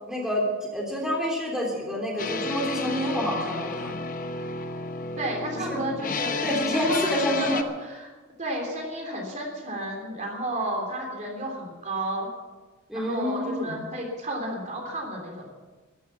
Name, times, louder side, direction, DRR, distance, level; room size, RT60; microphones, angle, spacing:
voice 1, 0.1-3.9 5.5-5.8 6.4-7.6 12.9-13.8, equal, 5° right, -3 dB, 3.2 m, -28 dB
sound 1, 2.2-7.6, left 3 dB, 40° left, 0.9 m, -31 dB
voice 2, 5.2-6.4 6.8-8.1 8.4-12.3 12.9-15.5, right 1 dB, 35° right, 1 dB, 3.3 m, -32 dB
14.0 x 12.5 x 7.1 m, 1.3 s
head